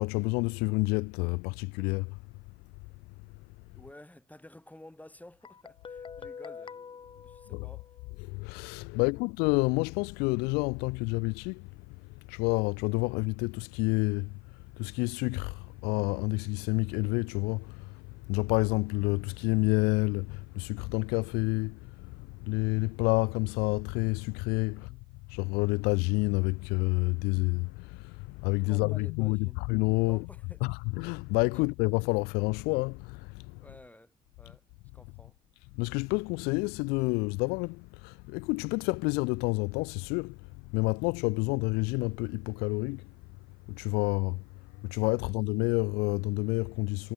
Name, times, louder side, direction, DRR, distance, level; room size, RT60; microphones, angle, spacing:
voice 1, 0.0-2.2 7.5-7.7 8.2-11.7 12.3-14.3 14.8-24.9 25.3-30.3 30.6-33.6 35.8-40.4 40.7-43.0 43.7-44.4 44.8-47.1, left 28 dB, 85° left, 0.4 m, -29 dB
voice 2, 3.7-7.9 8.9-9.2 24.7-25.0 28.6-29.6 30.0-30.7 31.5-31.6 33.6-34.6 34.9-35.4, left 1 dB, 10° left, 5.3 m, -53 dB
Guitar, 5.4-8.2, left 6 dB, 35° left, 0.5 m, -46 dB
hypercardioid pair, 50°, 16 cm